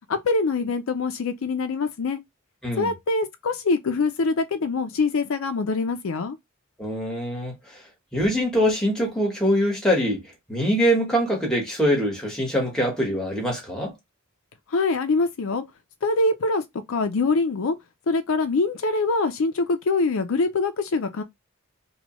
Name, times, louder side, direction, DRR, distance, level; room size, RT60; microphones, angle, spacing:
voice 1, 0.1-2.2 2.8-6.4 14.7-15.6 16.0-16.6 16.9-17.7 18.1-21.2, left 3 dB, 70° left, 0.5 m, -24 dB
voice 2, 6.8-7.8 8.1-13.9, equal, 5° left, 1.2 m, -23 dB
3.0 x 2.2 x 2.9 m
head